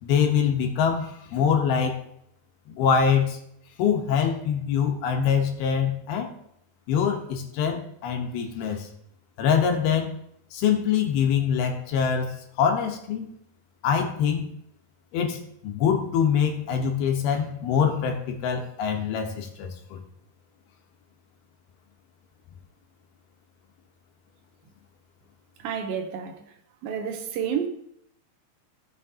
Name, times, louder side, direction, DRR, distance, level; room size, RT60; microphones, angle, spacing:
voice 1, 0.0-2.0 2.7-3.4 3.8-6.3 6.9-8.9 9.4-10.1 10.5-13.3 13.8-14.5 15.1-20.0, left 7 dB, 80° left, 3.0 m, -24 dB
voice 2, 25.6-26.5 26.8-27.7, right 7 dB, 75° right, 2.5 m, -30 dB
15.5 x 7.2 x 2.8 m
omnidirectional pair, 4.4 m